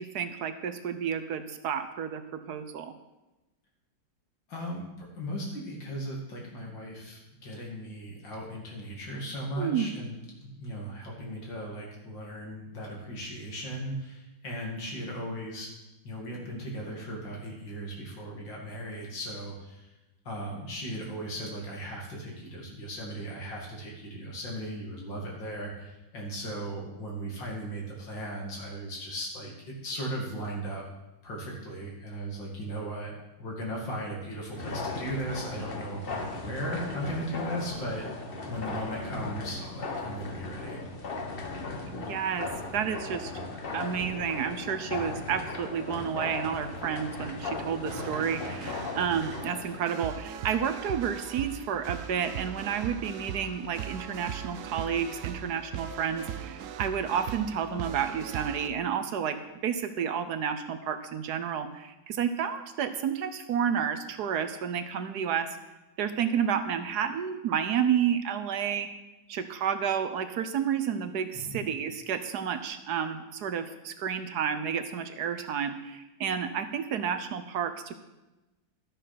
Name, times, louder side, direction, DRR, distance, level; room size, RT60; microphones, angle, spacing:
voice 1, 0.0-2.9 9.6-9.9 41.9-43.3 43.7-59.4 59.6-65.5 66.0-68.9 69.3-77.9, right 8 dB, 65° right, 9 dB, 1.2 m, -31 dB
voice 2, 4.5-15.7 16.0-19.9 20.2-30.9 31.2-33.1 33.4-38.1 38.5-40.8 71.3-71.7, right 1 dB, 75° left, -2 dB, 3.0 m, -37 dB
sound 1, 34.5-49.8, left 3 dB, 35° left, 1.1 m, -37 dB
sound 2, 47.6-58.7, right 10 dB, 85° right, 0.7 m, -39 dB
12.5 x 6.9 x 5.8 m, 1.0 s
omnidirectional pair, 2.0 m